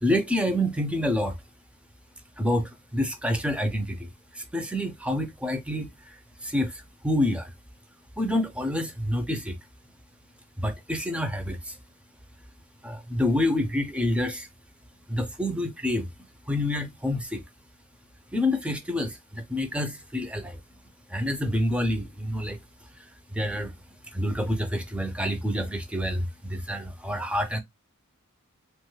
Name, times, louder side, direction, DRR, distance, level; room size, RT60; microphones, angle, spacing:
voice 1, 0.0-1.3 2.4-4.1 4.3-6.2 6.4-7.5 8.2-9.5 10.6-11.7 12.8-14.5 15.1-16.1 16.5-17.4 18.3-20.6 21.1-22.6 23.3-23.7 24.1-27.6, left 1 dB, 5° right, 0.4 m, -27 dB
2.9 x 2.2 x 3.1 m
head